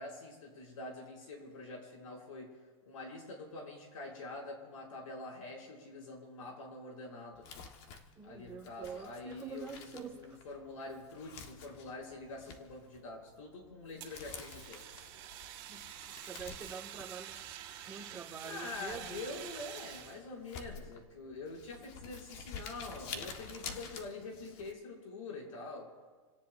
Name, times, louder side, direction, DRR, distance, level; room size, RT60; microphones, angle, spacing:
voice 1, 0.0-2.6 2.8-7.5 8.2-14.9 18.4-25.9, left 3 dB, 85° left, -1 dB, 6.4 m, -45 dB
Crumpling crinkling, 7.3-24.7, left 5 dB, 35° left, 1.4 m, -50 dB
voice 2, 8.2-10.4 15.7-15.8 16.3-17.4 17.9-19.2, right 6 dB, 15° right, 0 dB, 1.7 m, -46 dB
Fire, 14.0-20.2, right 12 dB, 30° right, 2.8 m, -48 dB
28.5 x 17.5 x 2.6 m, 1.4 s
supercardioid pair, 160°, 17 cm